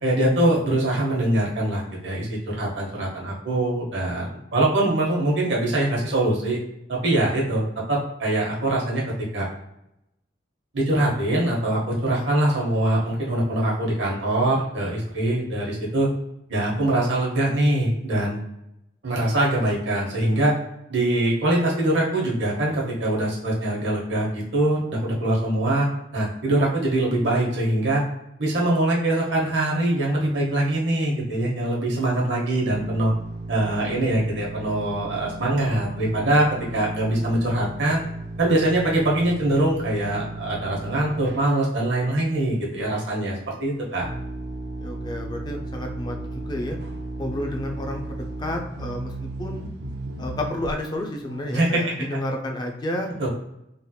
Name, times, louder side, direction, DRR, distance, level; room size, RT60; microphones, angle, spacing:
voice 1, 0.0-6.6 6.9-9.5 10.7-16.1 16.5-18.4 19.0-20.5 20.9-25.9 26.1-28.0 28.4-33.1 33.5-36.5 36.7-38.0 38.4-43.3 43.6-44.1 51.5-51.8 53.2-53.3, right 1 dB, 85° right, -3 dB, 1.0 m, -23 dB
sound 1, 32.7-41.6 42.3-42.4 42.8-42.9 44.0-50.8 51.2-51.4, right 2 dB, 65° right, 0.5 m, -35 dB
voice 2, 44.8-46.8 47.2-49.6 50.2-53.1, left 1 dB, 25° left, 3 dB, 0.4 m, -31 dB
3.3 x 2.8 x 2.3 m, 0.85 s
head